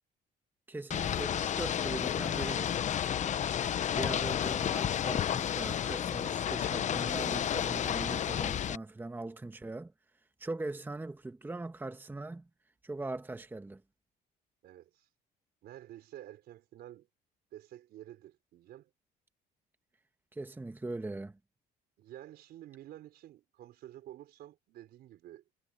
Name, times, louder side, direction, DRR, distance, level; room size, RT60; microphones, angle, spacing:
voice 1, 0.7-2.8 3.9-9.9 10.4-12.5 12.8-13.8 20.3-21.4, right 2 dB, 10° right, 1.3 m, -40 dB
Ocean / Boat Water vehicle, 0.9-8.8, left 9 dB, 45° left, 0.8 m, -31 dB
voice 2, 14.6-15.1 15.6-17.1 17.5-18.9 22.0-25.4, right 13 dB, 70° right, 4.0 m, -50 dB
cardioid pair, 110°, 17 cm